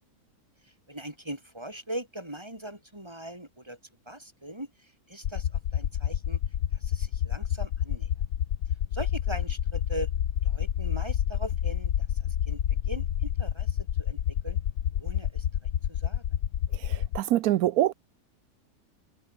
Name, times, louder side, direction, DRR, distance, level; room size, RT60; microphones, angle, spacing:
voice 1, 0.6-3.8 4.1-6.4 6.7-8.1 8.9-10.1 10.4-11.9 12.5-14.6 14.9-15.5 15.9-16.2, right 1 dB, 15° right, 5.3 m, -40 dB
sound 1, 5.2-17.2, left 10 dB, 75° left, 1.4 m, -28 dB
voice 2, 16.7-17.9, right 13 dB, 85° right, 1.1 m, -25 dB
omnidirectional pair, 1.6 m